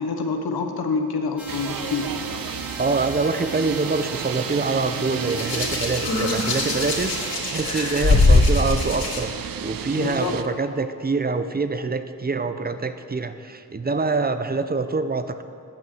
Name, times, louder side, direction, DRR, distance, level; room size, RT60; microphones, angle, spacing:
voice 1, 0.0-2.1 10.0-10.4, left 4 dB, 85° left, 5 dB, 1.0 m, -26 dB
sound 1, 1.4-7.4, left 1 dB, 5° right, 1.7 m, -39 dB
sound 2, 1.5-10.4, right 8 dB, 70° right, 0.6 m, -32 dB
voice 2, 2.8-9.3 9.6-15.4, right 3 dB, 25° right, 10 dB, 0.7 m, -25 dB
Hands, 5.3-9.2 10.2-10.5, left 3 dB, 70° left, 2.8 m, -21 dB
10.5 x 5.9 x 7.7 m, 2.4 s
cardioid pair, 55°, 36 cm